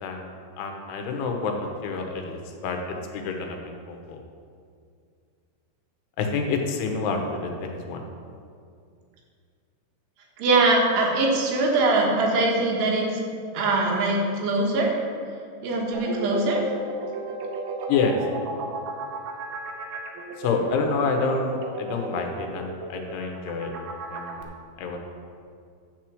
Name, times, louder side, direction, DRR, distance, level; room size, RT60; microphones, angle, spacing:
voice 1, 0.0-4.2 6.2-8.0 17.9-18.2 20.4-23.7 24.1-25.0, left 4 dB, 85° left, 3 dB, 3.0 m, -28 dB
voice 2, 10.4-13.1 13.6-15.0 15.6-16.6, right 2 dB, 90° right, -1 dB, 3.5 m, -22 dB
sound 1, 15.9-24.4, right 3 dB, 70° right, 2.3 m, -34 dB
10.5 x 4.5 x 7.5 m, 2.3 s
omnidirectional pair, 4.6 m